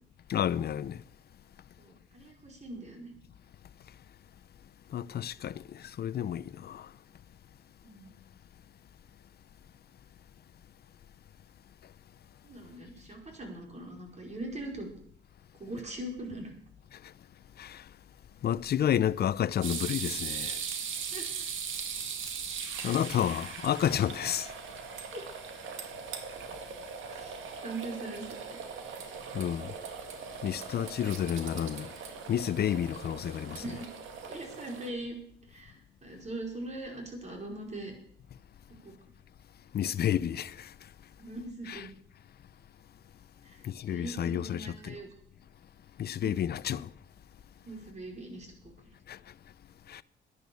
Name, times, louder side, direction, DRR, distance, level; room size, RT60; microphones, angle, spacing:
voice 1, 0.3-1.0 4.9-6.9 17.6-17.8 18.4-20.6 22.8-24.5 29.3-29.7 30.4-31.9 32.3-33.6 39.7-40.7 41.7-41.8 43.6-45.0 46.0-46.9 49.1-49.2 49.9-50.0, left 10 dB, 55° left, 0.6 m, -30 dB
voice 2, 1.8-3.1 7.8-8.1 12.4-14.9 15.6-16.5 21.1-21.3 25.1-25.3 27.1-28.6 33.6-33.9 34.3-35.2 35.5-37.9 38.8-38.9 41.2-41.9 43.4-45.1 46.2-46.3 47.7-48.5, right 2 dB, 35° right, 5.0 m, -41 dB
sound 1, 19.6-34.9, right 6 dB, 80° right, 2.1 m, -40 dB
12.5 x 10.5 x 7.0 m
cardioid pair, 90°, 20 cm